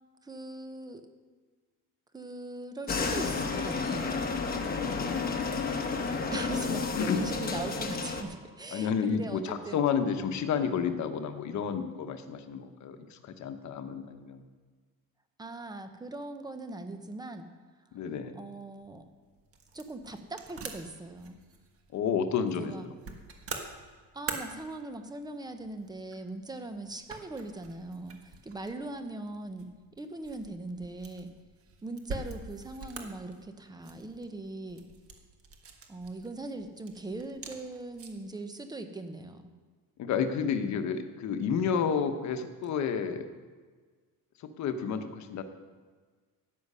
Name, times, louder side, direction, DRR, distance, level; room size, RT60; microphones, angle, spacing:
voice 1, 0.2-1.0 2.1-4.3 6.3-9.8 15.4-17.5 18.3-19.0 19.7-21.4 22.6-22.9 24.1-29.7 30.0-31.3 31.8-34.8 35.9-39.5, right 2 dB, 10° right, 7 dB, 0.8 m, -40 dB
sound 1, 2.9-8.2, left 4 dB, 25° left, 1.1 m, -31 dB
voice 2, 4.8-5.5 6.7-7.3 8.7-14.4 17.9-18.3 21.9-22.9 40.0-43.3 44.4-45.4, left 7 dB, 50° left, 8 dB, 1.1 m, -31 dB
sound 2, 18.8-38.3, right 4 dB, 40° right, 1.4 m, -46 dB
13.0 x 9.5 x 5.6 m, 1.5 s
cardioid pair, 175°, 36 cm